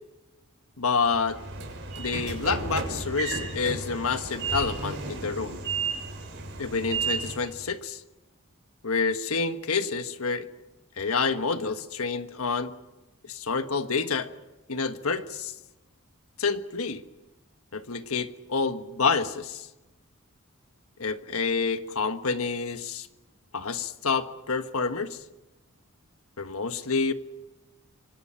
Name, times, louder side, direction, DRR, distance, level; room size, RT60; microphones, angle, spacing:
voice 1, 0.8-1.4 2.0-5.6 6.6-8.0 8.8-10.5 11.0-12.7 13.2-14.3 14.7-15.5 16.4-17.0 17.7-19.7 21.0-23.1 23.5-25.2 26.4-27.1, left 4 dB, 80° left, 9 dB, 1.4 m, -28 dB
Train / Sliding door, 1.1-7.6, right 4 dB, 60° right, 6.7 m, -33 dB
25.5 x 25.5 x 5.8 m, 1.1 s
head